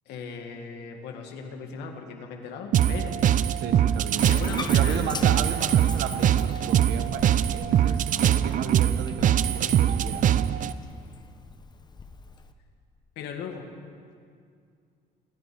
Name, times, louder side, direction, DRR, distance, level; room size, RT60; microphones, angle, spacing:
voice 1, 0.1-3.2 4.2-5.8 13.2-13.7, left 6 dB, 85° left, 3 dB, 2.0 m, -37 dB
sound 1, 2.7-10.7, right 10 dB, 50° right, 0.5 m, -22 dB
voice 2, 3.6-4.3 4.7-10.2, right 7 dB, 85° right, 8 dB, 1.3 m, -35 dB
Bathtub (filling or washing), 4.2-12.5, left 4 dB, 25° left, 0.9 m, -42 dB
26.0 x 9.8 x 5.2 m, 2.2 s
cardioid pair, 110°, 17 cm